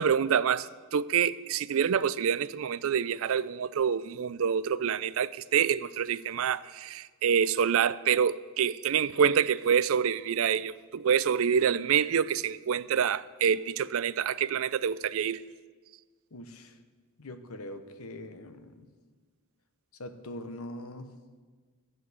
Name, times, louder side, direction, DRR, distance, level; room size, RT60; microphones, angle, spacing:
voice 1, 0.0-15.4, right 7 dB, 65° right, 0.4 m, -27 dB
voice 2, 16.3-16.8 17.2-18.9 20.0-21.1, left 1 dB, 75° left, 1.0 m, -42 dB
13.5 x 7.7 x 8.0 m
head